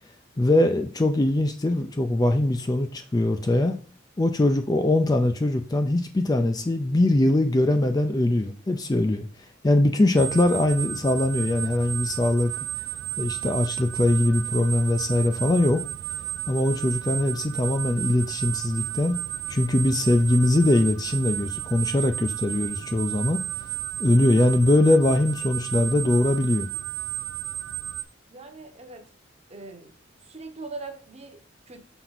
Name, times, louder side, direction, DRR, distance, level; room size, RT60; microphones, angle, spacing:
voice 1, 0.4-3.8 4.2-9.3 9.6-12.5 13.2-15.8 16.5-19.2 19.5-23.4 24.0-26.7, left 1 dB, 20° left, 7 dB, 0.4 m, -22 dB
sound 1, 10.2-28.0, right 13 dB, 85° right, 0.4 m, -33 dB
voice 2, 28.3-29.1 29.5-29.9 30.2-31.8, right 3 dB, 35° right, 6 dB, 0.9 m, -41 dB
6.1 x 4.5 x 4.0 m, 0.40 s
head